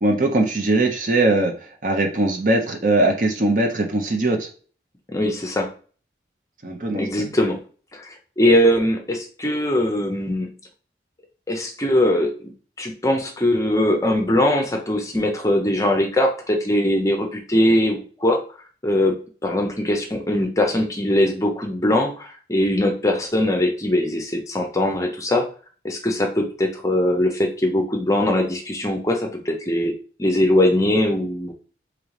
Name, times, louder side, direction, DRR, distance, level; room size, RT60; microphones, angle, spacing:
voice 1, 0.0-1.5 1.8-4.5 6.6-7.3, right 2 dB, 45° right, 3 dB, 0.7 m, -20 dB
voice 2, 5.1-5.7 6.9-7.6 7.9-10.5 11.5-12.5 12.8-18.4 18.8-25.5 25.8-29.9 30.2-31.5, left 1 dB, 20° left, 3 dB, 0.6 m, -21 dB
3.8 x 3.0 x 3.2 m, 0.39 s
head